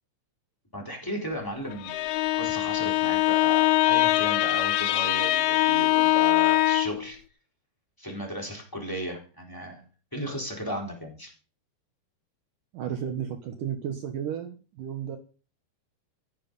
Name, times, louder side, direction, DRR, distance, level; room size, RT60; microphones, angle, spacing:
voice 1, 0.7-1.9 2.3-7.2 8.0-9.8 10.1-11.3, equal, 5° left, 0 dB, 3.4 m, -35 dB
Bowed string instrument, 1.7-7.1, left 17 dB, 85° left, 3.1 m, -23 dB
voice 2, 12.7-15.2, right 9 dB, 65° right, 6 dB, 2.2 m, -33 dB
14.5 x 9.3 x 5.4 m, 0.37 s
omnidirectional pair, 5.1 m